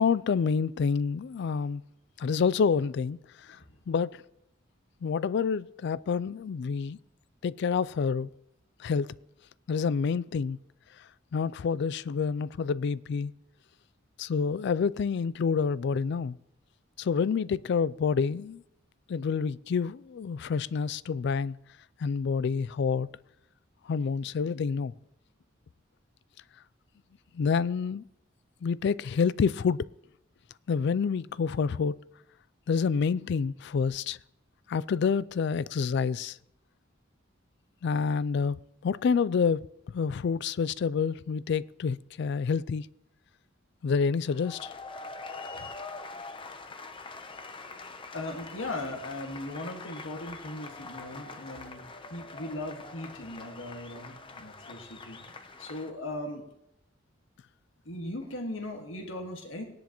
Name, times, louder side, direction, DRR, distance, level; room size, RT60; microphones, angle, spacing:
voice 1, 0.0-1.8 2.2-3.6 3.9-4.2 5.0-7.0 7.4-8.3 8.8-9.1 9.7-10.6 11.3-13.3 14.2-16.4 17.0-18.6 19.1-21.6 22.0-23.1 23.9-24.9 27.3-28.0 28.6-29.8 30.7-32.0 32.7-34.2 34.7-36.4 37.8-38.6 38.8-42.9 43.8-44.7, left 5 dB, 60° left, 0.3 m, -28 dB
sound 1, 44.3-55.9, left 3 dB, 25° left, 0.8 m, -44 dB
voice 2, 48.1-56.5 57.9-59.6, left 1 dB, 80° left, 1.7 m, -38 dB
19.0 x 10.5 x 3.0 m
head